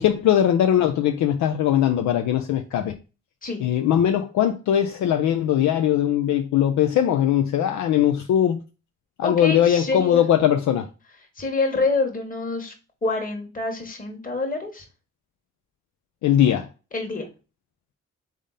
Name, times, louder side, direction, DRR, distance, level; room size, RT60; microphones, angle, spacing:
voice 1, 0.0-2.9 3.6-8.6 9.2-10.9 16.2-16.7, left 10 dB, 75° left, 0.5 m, -20 dB
voice 2, 9.2-10.2 11.4-12.7 13.0-14.8 16.9-17.3, left 3 dB, 30° left, 1.4 m, -26 dB
3.7 x 3.6 x 4.0 m
cardioid pair, 60°, 29 cm